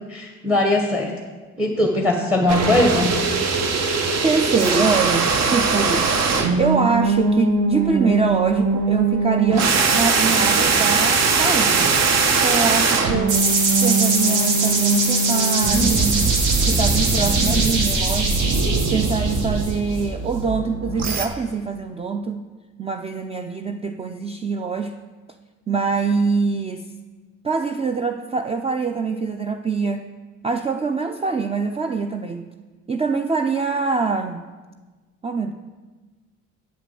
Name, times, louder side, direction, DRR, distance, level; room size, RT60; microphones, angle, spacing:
voice 1, 0.1-1.1 1.6-3.1, left 1 dB, 5° right, 2 dB, 1.1 m, -20 dB
sound 1, 2.5-21.3, right 4 dB, 60° right, 1.0 m, -21 dB
voice 2, 4.2-6.1 6.6-12.0 12.4-13.5 13.8-16.4 16.7-18.4 18.9-22.5 22.8-25.0 25.7-26.9 27.4-30.1 30.4-32.5 32.9-34.4 35.2-35.5, right 4 dB, 20° right, 7 dB, 0.4 m, -24 dB
sound 2, 13.3-20.0, right 3 dB, 85° right, 1.6 m, -23 dB
8.2 x 5.0 x 7.5 m, 1.3 s
cardioid pair, 90°, 30 cm